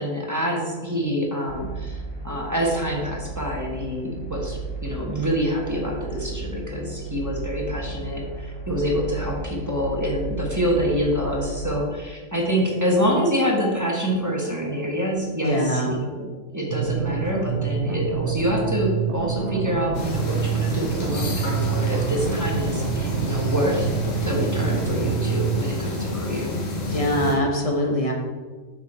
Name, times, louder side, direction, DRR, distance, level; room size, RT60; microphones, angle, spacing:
voice 1, 0.0-23.9 24.2-26.6, equal, 15° right, -2 dB, 1.3 m, -26 dB
sound 1, 1.5-11.7, right 3 dB, 90° left, 1.9 m, -34 dB
voice 2, 15.4-15.9 26.9-28.1, equal, 30° left, 1 dB, 1.1 m, -23 dB
sound 2, 16.7-25.7, right 7 dB, 60° right, 0.9 m, -27 dB
sound 3, 19.9-27.4, left 1 dB, 65° left, 1.7 m, -29 dB
7.1 x 6.0 x 4.4 m, 1.4 s
omnidirectional pair, 1.4 m